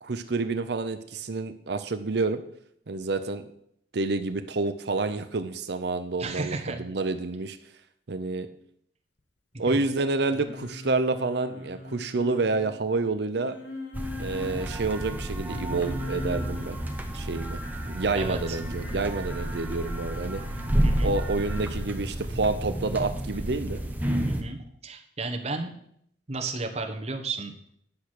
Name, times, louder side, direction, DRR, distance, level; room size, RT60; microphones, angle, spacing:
voice 1, 0.0-2.4 2.9-3.5 3.9-7.6 8.1-8.5 9.6-13.6 14.2-16.8 17.1-20.4 21.0-23.8, right 3 dB, 65° right, 9 dB, 0.7 m, -28 dB
voice 2, 6.2-6.9 9.6-9.8 18.1-18.6 20.8-21.1 23.3-23.4 24.2-25.7 26.3-27.5, right 3 dB, 35° right, 3 dB, 1.2 m, -33 dB
Singing, 10.3-12.7 13.4-14.5 15.4-16.8 18.7-19.0, left 2 dB, 80° left, 1.8 m, -39 dB
sound 1, 13.9-24.4, right 1 dB, 10° right, 1.0 m, -30 dB
10.5 x 6.0 x 6.5 m, 0.70 s
head